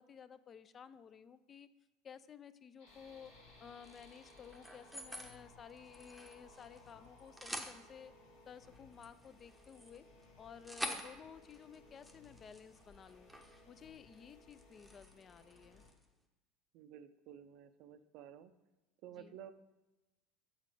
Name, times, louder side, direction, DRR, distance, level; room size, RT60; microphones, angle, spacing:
voice 1, 0.0-1.7 2.0-3.3 3.6-8.1 8.5-10.1 10.4-13.3 13.7-15.8 19.1-19.4, left 7 dB, 35° left, 14 dB, 0.4 m, -55 dB
sound 1, 2.8-8.9, left 1 dB, 80° left, 1.9 m, -65 dB
sound 2, 2.9-15.9, left 2 dB, 65° left, 1.2 m, -63 dB
sound 3, 3.8-5.3 5.7-6.9 7.2-7.8 8.6-13.6 13.9-14.2 14.5-16.0, equal, 5° right, 0.8 m, -48 dB
voice 2, 16.7-18.5 19.0-19.5, right 9 dB, 60° right, 12 dB, 0.4 m, -53 dB
7.3 x 4.0 x 4.8 m, 1.1 s
hypercardioid pair, 85°, 0 cm